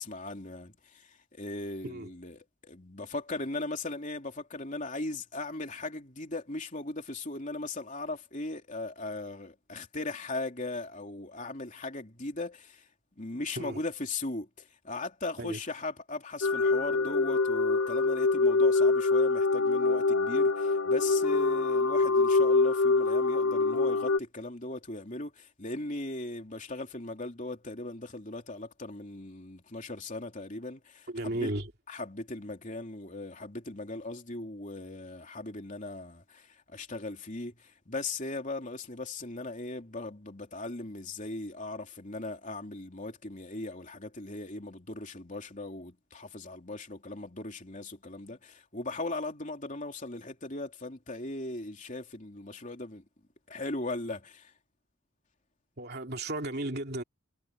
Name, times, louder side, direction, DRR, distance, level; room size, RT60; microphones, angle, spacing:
voice 1, 0.0-12.8 13.2-31.5 31.9-53.0 53.5-54.5, left 2 dB, 35° left, 3.2 m, -38 dB
sound 1, 16.4-24.2, left 3 dB, 75° left, 0.8 m, -25 dB
voice 2, 31.1-31.7 55.8-57.0, right 1 dB, 50° right, 2.7 m, -34 dB
head